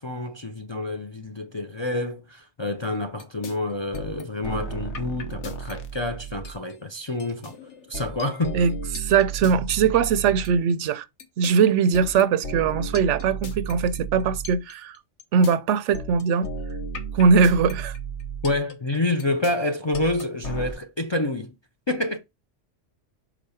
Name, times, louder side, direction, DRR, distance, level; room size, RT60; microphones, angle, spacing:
voice 1, 0.0-7.5 7.9-8.6 18.4-21.5 21.9-22.2, left 2 dB, 35° left, 0.4 m, -28 dB
sound 1, 3.2-3.5 3.9-6.7 7.2-10.7 11.2-15.5 15.9-20.7, right 4 dB, 70° left, 1.3 m, -34 dB
voice 2, 8.5-11.0 11.4-15.0 15.3-16.5 17.1-18.0, right 6 dB, 75° right, 0.9 m, -21 dB
5.1 x 3.9 x 5.5 m
omnidirectional pair, 1.2 m